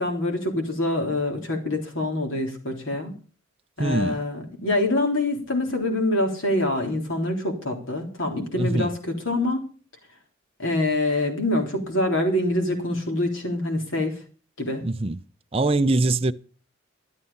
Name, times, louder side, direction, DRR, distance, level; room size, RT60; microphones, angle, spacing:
voice 1, 0.0-3.2 3.8-9.7 10.6-14.1 14.6-14.8, left 1 dB, 75° left, 3.5 m, -25 dB
voice 2, 3.8-4.2 8.6-8.9 14.8-15.2 15.5-16.3, right 2 dB, 30° right, 0.5 m, -23 dB
13.0 x 12.0 x 5.5 m
head